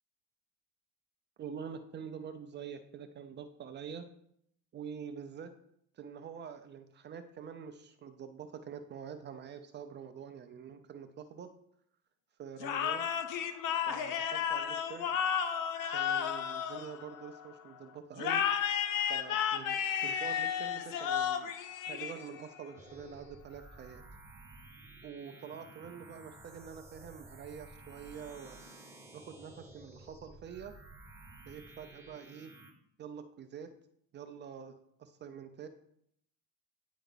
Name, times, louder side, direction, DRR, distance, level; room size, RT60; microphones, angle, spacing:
voice 1, 1.4-4.1 4.7-5.6 5.9-11.5 12.4-13.1 13.8-15.2 15.9-18.5 19.1-21.5 21.9-24.0 25.0-28.6 29.1-30.7 31.5-32.6 33.0-33.8 34.1-35.7, right 7 dB, 30° right, 9 dB, 0.4 m, -46 dB
sound 1, 12.6-17.4 18.2-22.6, left 8 dB, 45° left, 0.7 m, -33 dB
sound 2, 22.8-32.7, right 2 dB, 5° right, 0.7 m, -53 dB
9.3 x 4.5 x 3.8 m, 0.71 s
cardioid pair, 150°, 42 cm